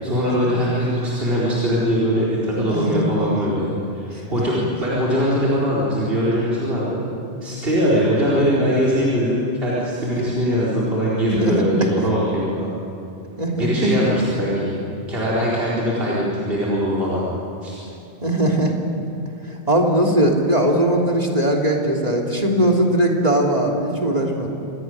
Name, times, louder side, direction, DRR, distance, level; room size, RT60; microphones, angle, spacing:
voice 1, 0.0-7.0 7.4-12.8 13.6-14.7 15.1-17.3 17.6-17.8, equal, 60° right, -7 dB, 4.7 m, -21 dB
voice 2, 2.5-3.0 4.3-4.4 11.3-11.7 13.4-13.9 18.2-18.7 19.7-24.5, right 1 dB, 35° right, 0 dB, 3.3 m, -20 dB
27.0 x 18.5 x 9.6 m, 2.7 s
omnidirectional pair, 1.1 m